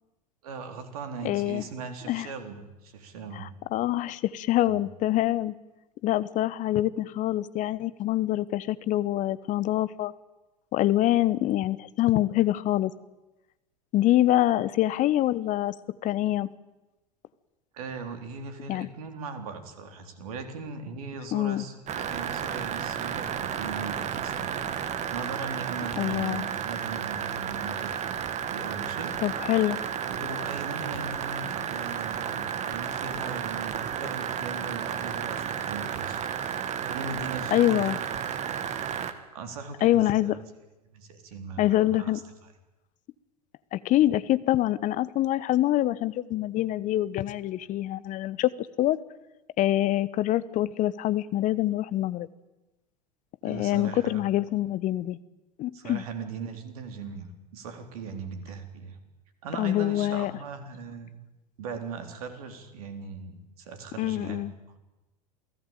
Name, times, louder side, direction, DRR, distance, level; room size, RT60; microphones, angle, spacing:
voice 1, 0.4-3.5 4.6-4.8 17.7-24.7 25.1-28.0 28.5-29.1 30.1-36.2 36.8-38.0 39.3-40.4 40.9-42.1 53.4-54.2 55.7-59.0 59.4-61.1 61.6-64.5, right 5 dB, 60° right, 8 dB, 4.0 m, -39 dB
voice 2, 1.2-1.6 2.1-2.3 3.3-5.5 6.0-10.1 10.7-12.9 13.9-15.8 16.0-16.5 18.7-18.9 21.3-21.6 26.0-26.4 29.2-29.8 37.5-38.0 39.8-40.4 41.6-42.2 43.7-48.5 48.8-49.0 49.6-52.3 53.4-55.2 55.6-56.0 59.6-60.3 64.0-64.5, left 14 dB, 40° left, 17 dB, 1.2 m, -25 dB
sound 1, 21.9-39.1, right 8 dB, 35° right, 2.2 m, -32 dB
28.0 x 17.0 x 9.0 m, 1.0 s
figure-of-eight pair, 85°, 21 cm